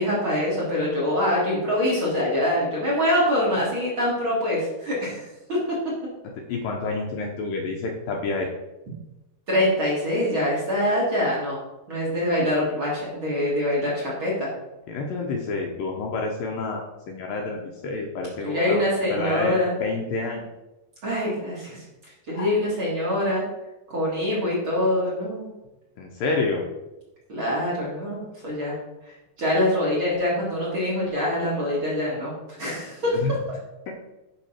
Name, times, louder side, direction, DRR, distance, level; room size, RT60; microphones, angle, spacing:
voice 1, 0.0-5.2 5.5-5.8 9.5-11.6 11.9-14.5 18.4-19.7 21.0-21.8 22.3-23.4 23.9-25.5 27.3-28.7 29.4-32.3 32.6-33.1, left 1 dB, 40° right, -6 dB, 2.2 m, -24 dB
voice 2, 6.4-8.4 14.9-18.8 19.1-20.5 22.3-22.5 26.0-26.6 33.1-33.3 33.9-34.0, left 3 dB, 75° left, 1 dB, 2.3 m, -29 dB
10.0 x 3.7 x 5.7 m, 1.0 s
omnidirectional pair, 4.6 m